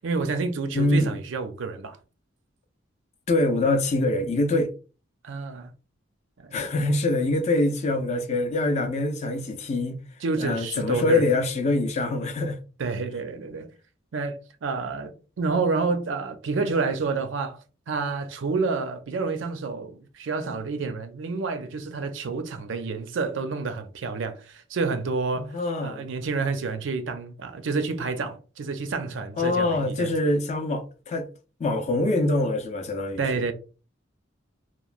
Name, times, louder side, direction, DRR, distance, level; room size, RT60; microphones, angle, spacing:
voice 1, 0.0-2.0 5.2-5.7 6.4-6.7 10.2-11.3 12.8-13.7 14.1-25.5 25.8-30.3 33.2-33.5, right 4 dB, 65° right, 0.4 m, -29 dB
voice 2, 0.7-1.2 3.3-4.7 6.5-10.0 10.4-12.6 25.4-26.1 29.4-31.3 31.6-33.5, left 2 dB, 35° left, 0.4 m, -24 dB
2.9 x 2.0 x 2.4 m
head